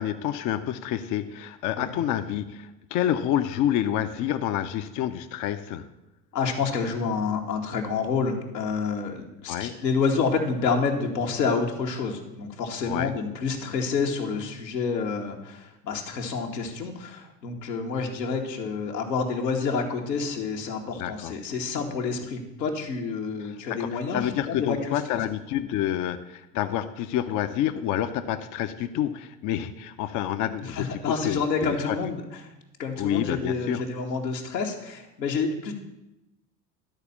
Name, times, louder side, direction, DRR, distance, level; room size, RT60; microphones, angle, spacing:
voice 1, 0.0-5.8 9.5-9.8 12.8-13.1 21.0-21.3 23.4-31.9 33.0-33.8, left 11 dB, 40° left, 8 dB, 0.6 m, -28 dB
voice 2, 6.3-25.0 30.6-32.2 32.8-35.7, left 5 dB, 80° left, 1 dB, 1.6 m, -28 dB
12.0 x 4.2 x 7.0 m, 0.94 s
hypercardioid pair, 80°, 49 cm